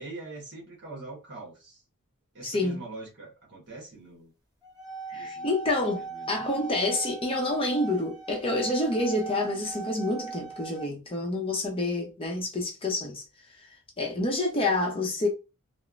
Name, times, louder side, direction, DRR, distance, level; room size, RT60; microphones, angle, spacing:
voice 1, 0.0-1.8 2.3-4.3 5.1-5.5 6.0-6.4, right 2 dB, 55° right, 1.1 m, -43 dB
voice 2, 2.4-2.8 5.1-13.2 14.0-15.3, left 2 dB, 25° left, 0.7 m, -28 dB
sound 1, 4.6-10.8, right 5 dB, 20° right, 1.1 m, -39 dB
3.1 x 2.0 x 2.4 m
head